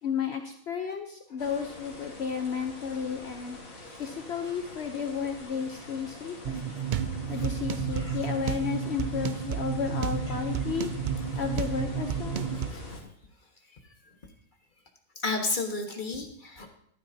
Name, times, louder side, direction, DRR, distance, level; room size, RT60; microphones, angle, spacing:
voice 1, 0.0-3.6 4.0-6.6 7.3-10.9 11.4-12.5, left 6 dB, 55° left, 5 dB, 1.0 m, -33 dB
sound 1, 1.4-13.0, left 1 dB, 90° left, 2.7 m, -41 dB
sound 2, 6.4-12.7, right 8 dB, 65° right, 0.4 m, -32 dB
voice 2, 15.2-16.7, left 3 dB, 35° left, 3 dB, 1.5 m, -31 dB
14.0 x 11.5 x 2.8 m, 0.69 s
omnidirectional pair, 1.4 m